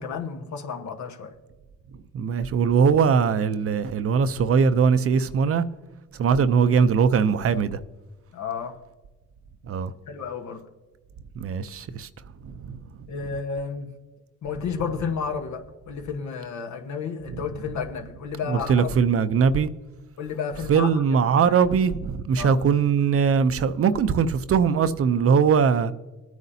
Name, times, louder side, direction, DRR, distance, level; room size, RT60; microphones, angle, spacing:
voice 1, 0.0-1.4 8.3-8.8 10.1-10.7 13.1-14.0 14.4-19.0 20.2-21.6 22.4-22.6, left 6 dB, 70° left, 1.3 m, -32 dB
voice 2, 2.1-5.6 6.2-7.8 9.7-9.9 11.4-12.1 12.4-12.8 18.5-19.7 20.7-25.9, right 6 dB, 50° right, 0.6 m, -21 dB
19.5 x 9.2 x 2.8 m
cardioid pair, 90°, 30 cm